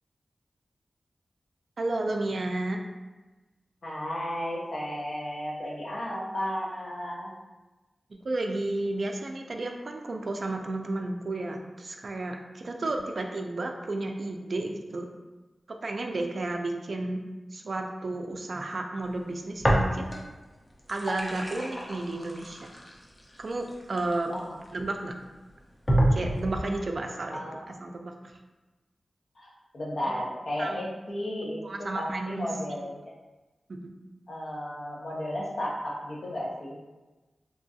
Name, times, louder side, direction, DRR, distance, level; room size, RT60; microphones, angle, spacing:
voice 1, 1.8-2.8 8.1-15.1 15.8-17.2 17.5-20.2 20.9-22.7 23.4-24.3 24.7-25.1 26.1-28.3 30.0-30.1 30.6-30.8 31.6-32.5 33.7-33.9, right 2 dB, 60° right, 3 dB, 0.3 m, -32 dB
voice 2, 3.8-7.3 24.3-24.4 27.3-27.5 29.4-33.0 34.3-36.8, equal, 70° left, -4 dB, 0.6 m, -34 dB
sound 1, 19.6-20.4 20.7-24.7 25.2-25.3 25.9-26.8, right 1 dB, 20° left, 0.5 m, -28 dB
2.9 x 2.3 x 2.6 m, 1.2 s
wide cardioid pair, 80°, 0 cm